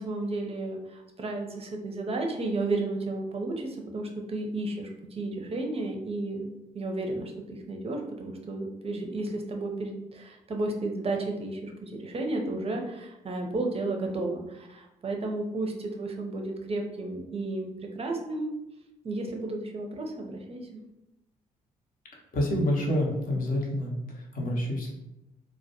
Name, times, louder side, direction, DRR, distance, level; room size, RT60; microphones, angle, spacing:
voice 1, 0.0-6.5 6.7-18.6 19.0-20.8, right 2 dB, 30° right, 3 dB, 0.5 m, -33 dB
voice 2, 22.1-24.9, left 1 dB, 50° left, -1 dB, 0.7 m, -28 dB
2.1 x 2.1 x 2.8 m, 0.92 s
hypercardioid pair, 40°, 19 cm